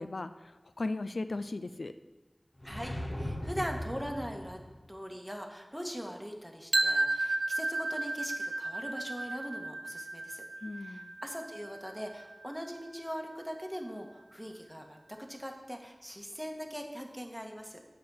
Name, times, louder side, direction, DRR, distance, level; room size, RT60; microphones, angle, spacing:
voice 1, 0.0-1.9 10.6-11.2, left 2 dB, 90° left, 10 dB, 0.4 m, -37 dB
sound 1, 2.6-4.8, equal, 50° left, 2.1 m, -38 dB
voice 2, 2.6-10.4 10.7-17.8, equal, ahead, 2 dB, 1.5 m, -41 dB
sound 2, 6.7-12.6, right 2 dB, 75° right, 0.4 m, -33 dB
8.7 x 5.2 x 7.1 m, 1.1 s
wide cardioid pair, 45°, 0 cm